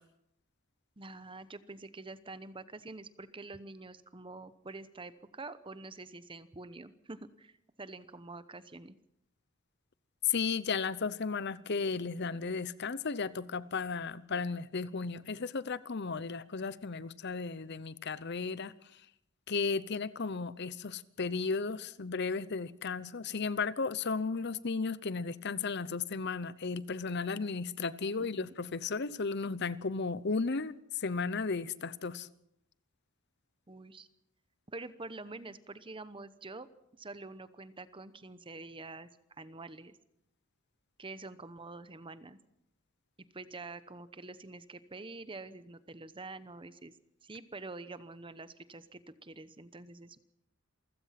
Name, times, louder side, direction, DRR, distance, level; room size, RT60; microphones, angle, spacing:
voice 1, 1.0-7.5 7.8-9.0 28.2-28.6 33.7-34.1 34.7-36.7 37.0-39.1 39.4-40.0 41.0-42.4 43.3-46.9 47.2-50.2, right 3 dB, 25° right, 0.9 m, -46 dB
voice 2, 10.3-18.7 19.5-32.3, left 4 dB, 55° left, 0.8 m, -34 dB
27.5 x 16.0 x 5.9 m
head